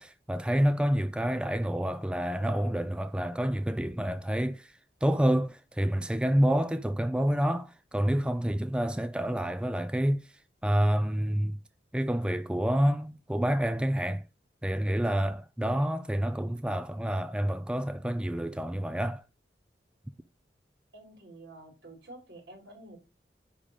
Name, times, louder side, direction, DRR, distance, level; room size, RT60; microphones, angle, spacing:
voice 1, 0.0-11.6 11.9-14.2 14.6-19.2, equal, 5° right, 0.4 m, -28 dB
voice 2, 20.9-23.0, right 2 dB, 75° right, 4.0 m, -49 dB
10.0 x 3.7 x 6.5 m
head